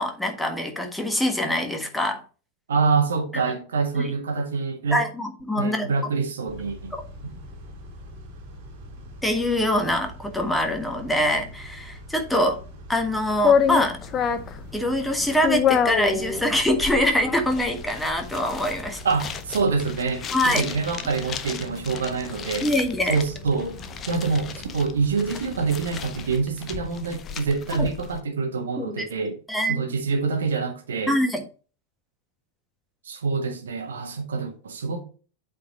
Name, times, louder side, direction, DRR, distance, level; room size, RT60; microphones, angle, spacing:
voice 1, 0.0-2.2 3.9-4.1 4.9-5.9 9.2-12.6 12.9-14.0 14.7-19.0 20.3-20.6 22.6-23.2 27.8-27.9 28.8-29.1 29.5-29.9 31.1-31.4, left 1 dB, 5° left, 1.5 m, -24 dB
voice 2, 2.7-5.0 5.5-6.9 7.3-7.4 19.0-22.7 23.1-23.8 24.1-29.4 29.7-31.2 33.0-35.0, right 4 dB, 65° right, 1.6 m, -26 dB
Car / Idling / Accelerating revving vroom, 6.5-26.4, equal, 45° right, 2.3 m, -43 dB
sound 1, 13.4-28.2, left 7 dB, 25° left, 0.7 m, -29 dB
8.1 x 4.4 x 4.3 m
figure-of-eight pair, 90°, 0 cm